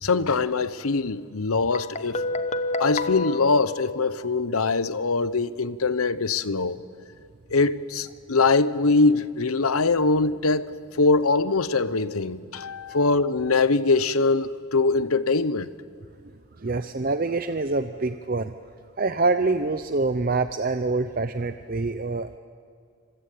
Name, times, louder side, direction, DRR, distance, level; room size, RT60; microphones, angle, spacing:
voice 1, 0.0-2.2 2.8-6.8 7.5-10.7 11.0-15.7, left 3 dB, 85° left, 0.9 m, -22 dB
Guitar, 1.7-4.5, left 3 dB, 30° left, 0.9 m, -30 dB
voice 2, 16.6-18.5 19.0-22.4, right 3 dB, 40° right, 0.6 m, -25 dB
26.0 x 24.5 x 8.5 m
head